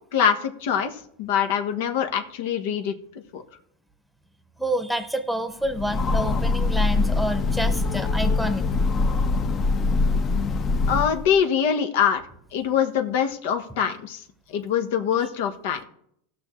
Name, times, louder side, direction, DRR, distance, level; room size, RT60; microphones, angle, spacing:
voice 1, 0.1-0.9 1.2-3.0 3.3-3.4 10.9-12.2 12.5-14.2 14.5-15.8, left 8 dB, 70° left, 6 dB, 1.2 m, -23 dB
voice 2, 4.6-8.7, equal, ahead, 9 dB, 1.0 m, -28 dB
Train, 5.6-11.4, left 3 dB, 30° left, 0.8 m, -23 dB
18.0 x 6.1 x 3.2 m, 0.70 s
supercardioid pair, 130°, 0 cm